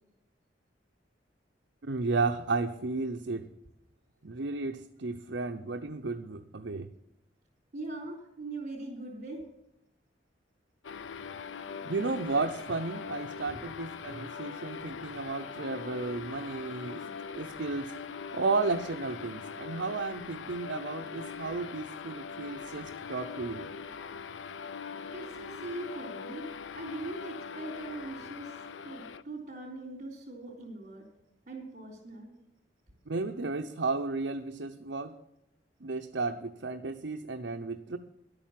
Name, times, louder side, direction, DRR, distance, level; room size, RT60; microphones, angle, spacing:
voice 1, 1.8-3.5 4.2-6.9 11.8-17.0 17.4-17.9 18.3-23.7 33.1-35.1 35.8-38.0, right 3 dB, 65° right, 5 dB, 0.7 m, -33 dB
voice 2, 7.7-9.4 13.5-13.6 25.1-26.5 26.7-31.1 31.5-32.3, right 2 dB, 45° right, -6 dB, 3.9 m, -41 dB
sound 1, 10.8-29.2, left 6 dB, 85° left, 0.6 m, -42 dB
11.5 x 8.8 x 7.6 m, 0.84 s
head